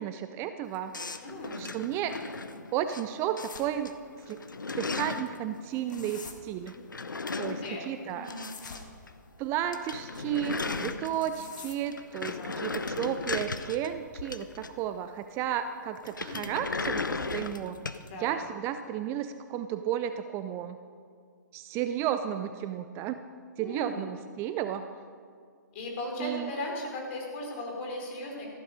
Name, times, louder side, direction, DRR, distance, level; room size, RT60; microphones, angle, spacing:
voice 1, 0.0-1.2 1.6-2.2 2.7-3.9 4.3-4.4 4.8-6.7 7.4-8.3 9.4-17.8 18.2-20.8 21.5-23.2 23.6-24.9 26.2-26.5, right 10 dB, 25° right, 9 dB, 0.4 m, -33 dB
sound 1, 0.9-3.0 3.4-3.9 4.2-5.4 6.7-8.8 9.1-9.2 9.5-9.6 9.7-11.5 11.9-15.0 16.0-18.1, left 4 dB, 90° left, 0.7 m, -36 dB
voice 2, 1.2-1.7 7.3-8.5 12.4-12.6 16.2-16.6 18.0-18.4 23.6-24.1 25.7-28.5, left 1 dB, 40° left, 0 dB, 4.2 m, -38 dB
sound 2, 3.4-3.7 5.6-6.3 8.2-8.9 11.1-11.9, left 4 dB, 75° left, 1.6 m, -45 dB
14.5 x 12.0 x 5.2 m, 2.1 s
hypercardioid pair, 130°, 10 cm